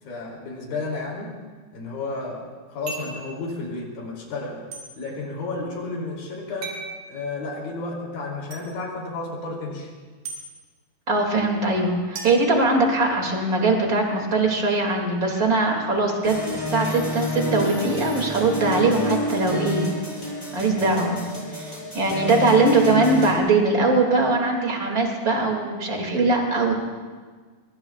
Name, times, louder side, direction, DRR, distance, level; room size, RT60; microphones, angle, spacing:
voice 1, 0.0-1.4 1.7-4.6 5.0-6.8 7.1-9.9, left 3 dB, 70° left, -1 dB, 4.7 m, -32 dB
sound 1, 2.9-3.2 4.7-4.9 6.6-6.9 8.5-8.6 10.3-10.4 12.2-13.2, right 3 dB, 75° right, 5.3 m, -36 dB
voice 2, 11.1-19.9 20.3-21.2 21.5-26.7, right 3 dB, 30° right, 1 dB, 2.1 m, -21 dB
sound 2, 16.2-23.4, left 1 dB, 5° left, 5.0 m, -29 dB
24.0 x 23.5 x 2.4 m, 1.5 s
omnidirectional pair, 4.4 m